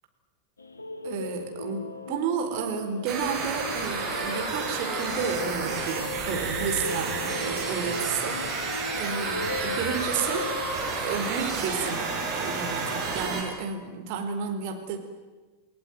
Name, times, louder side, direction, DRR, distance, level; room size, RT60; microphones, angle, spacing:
sound 1, 0.6-10.7, left 3 dB, 75° left, 2.1 m, -37 dB
voice 1, 1.0-10.5 10.9-15.0, right 7 dB, 45° right, 5 dB, 4.4 m, -32 dB
sound 2, 3.1-13.4, right 4 dB, 30° right, 6.9 m, -31 dB
29.0 x 19.0 x 9.4 m, 1.3 s
figure-of-eight pair, 90°, 0 cm